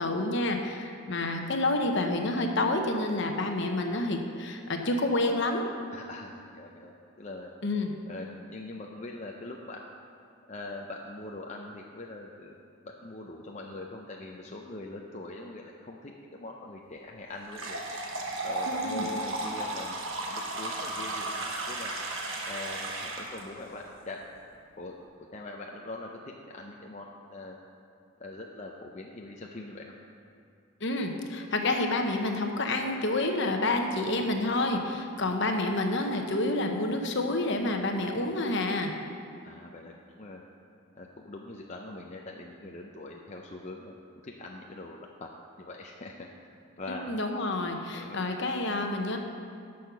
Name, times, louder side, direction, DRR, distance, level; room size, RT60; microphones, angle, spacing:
voice 1, 0.0-5.7 7.6-7.9 18.8-19.0 30.8-38.9 47.1-49.2, left 2 dB, 55° left, 4 dB, 0.9 m, -28 dB
voice 2, 5.9-7.5 8.1-9.8 10.5-12.6 12.9-17.8 18.4-20.0 20.3-21.9 22.5-24.2 24.8-25.0 25.3-27.6 28.2-29.9 35.2-35.4 39.4-40.4 40.9-43.9 44.2-45.3 45.6-46.3 46.8-47.1 47.9-48.2, left 2 dB, 35° left, 0 dB, 0.5 m, -42 dB
sound 1, 17.5-23.4, right 2 dB, 65° right, 1.2 m, -34 dB
10.5 x 6.4 x 5.8 m, 2.4 s
head